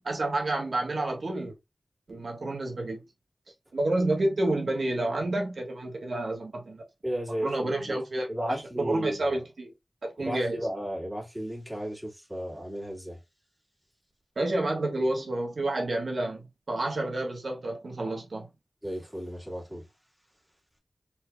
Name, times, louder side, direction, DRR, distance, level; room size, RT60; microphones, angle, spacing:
voice 1, 0.0-1.5 2.1-3.0 3.7-6.8 7.4-9.7 10.0-10.6 14.4-18.5, right 2 dB, 75° right, 1.4 m, -29 dB
voice 2, 7.0-8.0 8.3-9.3 10.2-13.2 18.8-19.8, equal, 15° right, 2.1 m, -34 dB
4.4 x 3.5 x 2.3 m
wide cardioid pair, 75°, 0 cm